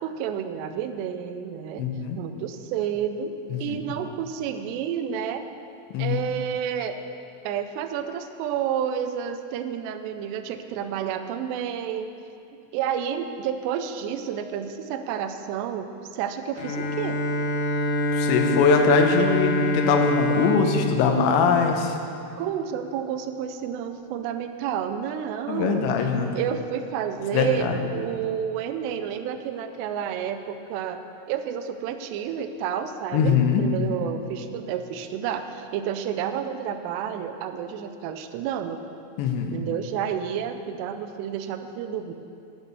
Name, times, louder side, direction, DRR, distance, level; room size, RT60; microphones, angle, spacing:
voice 1, 0.0-1.9 2.2-3.3 3.6-5.5 6.0-7.0 7.4-12.1 12.5-17.2 22.4-25.9 26.4-31.0 31.3-38.8 39.5-42.1, right 8 dB, 85° right, 8 dB, 2.7 m, -30 dB
voice 2, 1.8-2.2 3.5-3.8 5.9-6.2 18.1-22.0 25.5-26.3 27.3-27.8 33.1-34.0 39.2-39.6, left 5 dB, 90° left, 4 dB, 3.2 m, -22 dB
Bowed string instrument, 16.6-22.3, left 1 dB, 75° left, 2.7 m, -26 dB
10.5 x 7.1 x 6.8 m, 2.5 s
omnidirectional pair, 4.9 m